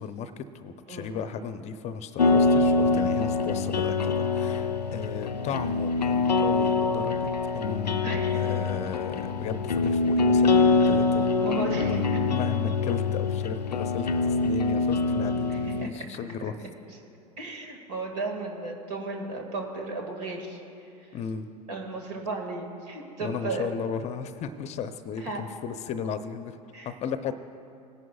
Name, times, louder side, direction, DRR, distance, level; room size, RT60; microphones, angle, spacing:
voice 1, 0.0-7.3 7.5-16.6 21.1-21.5 23.2-26.6 26.8-27.3, left 7 dB, 35° left, 11 dB, 0.6 m, -35 dB
sound 1, 2.2-15.9, left 3 dB, 90° left, 0.4 m, -24 dB
voice 2, 8.0-8.4 11.4-12.2 15.5-16.1 16.6-16.7 17.4-21.2 21.7-23.7 25.2-25.4 26.7-26.9, right 3 dB, 70° right, 1 dB, 2.0 m, -35 dB
19.5 x 11.0 x 2.3 m, 2.6 s
figure-of-eight pair, 85°, 21 cm